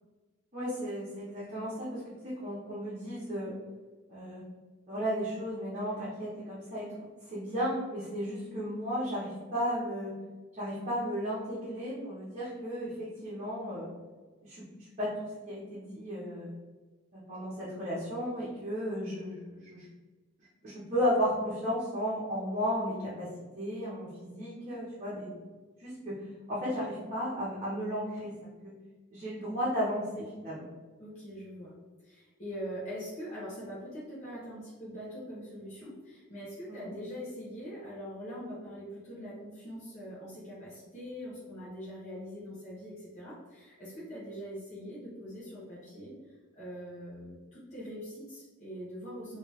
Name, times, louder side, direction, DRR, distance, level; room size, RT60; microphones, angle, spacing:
voice 1, 0.5-3.5 4.1-4.4 4.9-10.1 10.5-13.9 14.4-15.1 15.4-16.5 17.1-19.9 20.6-23.3 23.5-25.4 25.8-26.2 26.5-28.7 29.1-30.6 36.7-36.9, equal, 35° right, -9 dB, 1.0 m, -34 dB
voice 2, 31.0-31.8 32.0-46.1 46.5-49.4, equal, 35° left, -10 dB, 1.0 m, -43 dB
3.2 x 2.9 x 3.2 m, 1.3 s
head